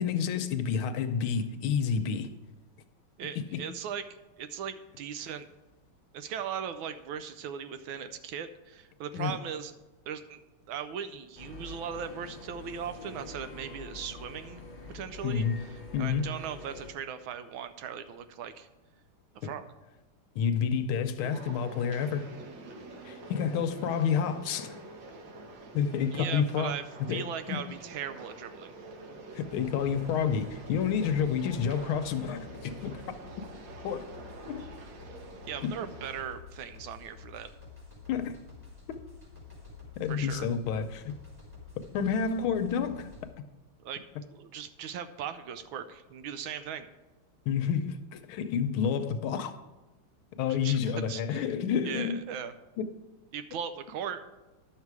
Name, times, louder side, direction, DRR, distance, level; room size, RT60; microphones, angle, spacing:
voice 1, 0.0-2.3 3.4-3.6 9.1-9.3 15.2-15.6 15.9-16.3 19.4-19.5 20.4-22.3 23.0-24.7 25.7-26.7 27.0-27.6 29.3-33.0 33.8-34.0 34.5-34.7 35.6-35.8 38.1-38.3 40.0-41.2 41.9-43.1 43.4-43.5 47.5-49.6 50.4-52.2 52.8-52.9, left 7 dB, 75° left, 1.5 m, -29 dB
voice 2, 3.2-5.5 6.1-9.7 10.1-10.4 10.7-14.6 14.9-18.7 19.3-19.6 26.1-28.7 35.5-37.5 40.1-40.5 43.8-44.1 44.3-46.9 50.6-51.5 51.8-52.5 53.3-54.4, right 8 dB, 75° right, 1.3 m, -38 dB
sound 1, 11.4-16.9, left 3 dB, 40° left, 0.6 m, -46 dB
sound 2, 21.2-36.2, right 2 dB, 60° right, 1.7 m, -47 dB
sound 3, 29.4-43.3, left 5 dB, 5° right, 3.7 m, -50 dB
11.0 x 6.7 x 4.7 m
omnidirectional pair, 2.4 m